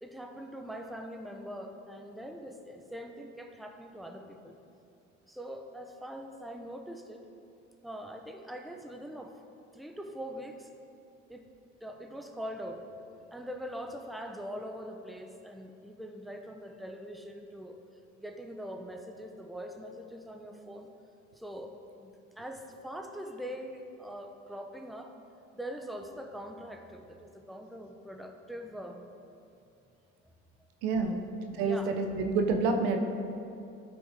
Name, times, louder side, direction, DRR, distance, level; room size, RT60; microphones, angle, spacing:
voice 1, 0.0-4.5 5.3-7.2 7.8-9.3 9.7-10.7 11.3-11.4 11.8-12.8 13.3-17.8 18.2-20.9 21.4-25.1 25.5-29.0 31.0-31.3 31.6-31.9, equal, ahead, 4 dB, 0.9 m, -42 dB
voice 2, 30.8-31.2 31.5-33.0, right 4 dB, 75° right, 5 dB, 1.0 m, -28 dB
13.5 x 6.1 x 3.7 m, 2.7 s
hypercardioid pair, 60°, 36 cm